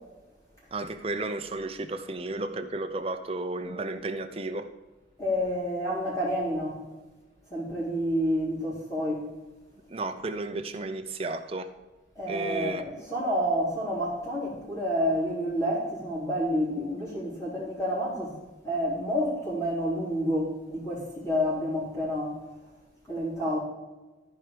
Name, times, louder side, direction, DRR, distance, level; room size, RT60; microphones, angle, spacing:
voice 1, 0.7-4.7 9.9-11.7 12.3-12.8, right 2 dB, 30° right, 7 dB, 0.7 m, -33 dB
voice 2, 5.2-6.8 7.5-9.3 12.1-18.4 18.6-22.4 23.1-23.6, equal, 20° left, -7 dB, 3.5 m, -29 dB
14.0 x 4.8 x 5.1 m, 1.2 s
head